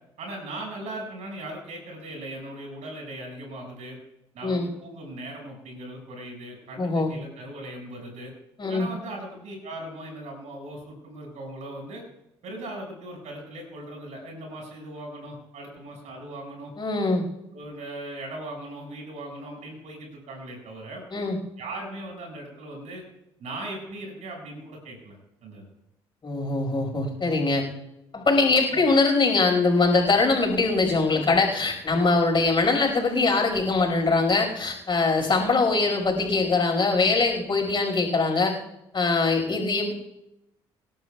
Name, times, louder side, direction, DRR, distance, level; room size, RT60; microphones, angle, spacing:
voice 1, 0.2-4.0 4.3-8.3 8.7-12.0 12.4-16.7 17.5-21.0 21.6-23.0 23.4-25.1 25.4-25.7 28.7-28.9, right 1 dB, 60° right, 0 dB, 6.0 m, -39 dB
voice 2, 6.8-7.1 8.6-8.9 16.8-17.2 21.1-21.4 26.2-27.6 28.1-38.5 38.9-39.9, left 3 dB, 40° left, 0 dB, 5.1 m, -22 dB
27.5 x 12.5 x 2.4 m, 0.87 s
hypercardioid pair, 50°, 13 cm